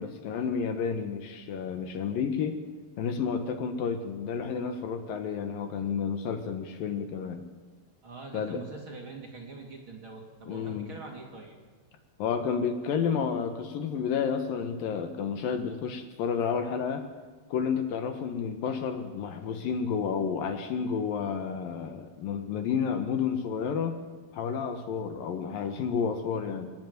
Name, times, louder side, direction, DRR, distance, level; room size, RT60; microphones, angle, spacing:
voice 1, 0.0-2.6 3.0-7.5 8.3-8.6 10.5-10.9 12.2-17.1 17.5-24.0 24.3-26.7, left 6 dB, 70° left, 8 dB, 2.7 m, -31 dB
voice 2, 8.0-11.5, right 3 dB, 35° right, 0 dB, 2.8 m, -44 dB
26.5 x 10.5 x 9.4 m, 1.4 s
omnidirectional pair, 4.5 m